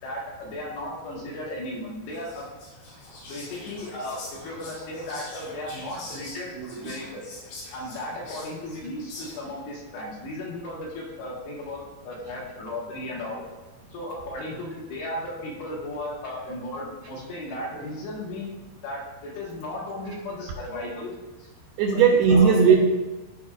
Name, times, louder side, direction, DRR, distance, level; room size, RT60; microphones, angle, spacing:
voice 1, 0.0-2.5 3.3-7.3 7.7-13.4 13.9-18.5 18.8-21.1 21.4-21.5 21.9-22.0 22.3-22.5, left 1 dB, 70° left, -4 dB, 3.3 m, -35 dB
Whispering, 2.1-9.6, left 2 dB, 85° left, 4.6 m, -44 dB
voice 2, 6.6-6.9 21.8-22.8, right 6 dB, 80° right, -1 dB, 2.2 m, -18 dB
14.0 x 5.2 x 2.5 m, 1.2 s
omnidirectional pair, 5.1 m